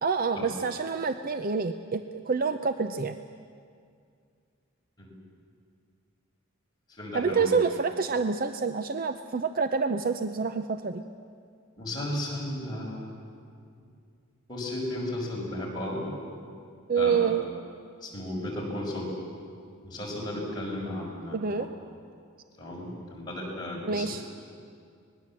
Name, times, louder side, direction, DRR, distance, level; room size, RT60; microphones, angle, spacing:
voice 1, 0.0-3.2 7.1-11.0 16.9-17.4 21.3-21.7 23.9-24.2, right 5 dB, 40° right, 9 dB, 0.6 m, -27 dB
voice 2, 6.9-7.5 11.8-13.1 14.5-16.1 17.0-17.4 18.0-19.1 19.8-21.7 22.6-24.2, left 1 dB, 20° left, -3 dB, 5.9 m, -34 dB
25.0 x 20.5 x 7.5 m, 2.3 s
head